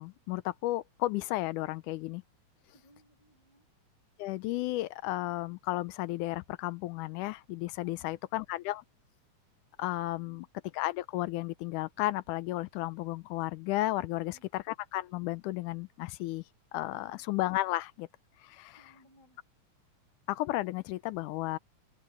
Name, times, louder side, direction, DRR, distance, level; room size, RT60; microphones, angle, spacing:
voice 1, 0.0-2.2 4.2-8.8 9.8-10.5 10.7-14.3 14.7-16.4 16.7-18.1 18.4-18.8 20.3-21.6, left 17 dB, 80° left, 2.1 m, -33 dB
voice 2, 2.7-3.7 7.8-8.2 10.1-10.4 14.1-14.5 16.9-17.2 18.8-19.4, equal, 55° left, 8.7 m, -62 dB
omnidirectional pair, 3.7 m